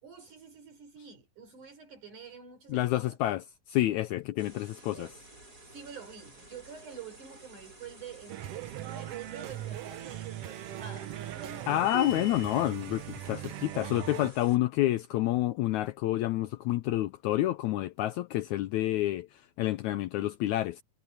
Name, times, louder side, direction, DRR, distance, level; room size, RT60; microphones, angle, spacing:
voice 1, 0.0-3.2 4.9-5.3 5.7-11.8, right 6 dB, 65° right, 5.6 m, -47 dB
voice 2, 2.7-5.1 11.7-20.8, left 15 dB, 80° left, 1.8 m, -29 dB
sound 1, 4.4-14.6, right 1 dB, 25° right, 6.3 m, -53 dB
sound 2, 8.3-14.3, right 13 dB, 80° right, 1.3 m, -40 dB
sound 3, 11.8-12.7, left 3 dB, 35° left, 2.1 m, -40 dB
omnidirectional pair, 3.8 m